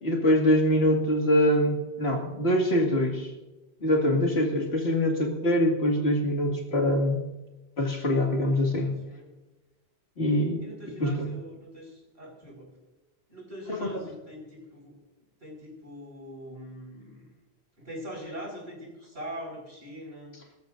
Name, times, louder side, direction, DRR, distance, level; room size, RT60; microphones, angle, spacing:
voice 1, 0.0-3.3 3.8-7.2 7.8-9.0 10.2-10.6 11.0-11.3 13.7-13.8, left 1 dB, 70° left, 1 dB, 2.6 m, -24 dB
voice 2, 8.6-9.3 10.6-12.7 13.3-15.0 15.4-17.3 17.8-20.4, equal, 75° right, -1 dB, 5.7 m, -42 dB
23.5 x 13.5 x 2.6 m, 1.1 s
omnidirectional pair, 1.1 m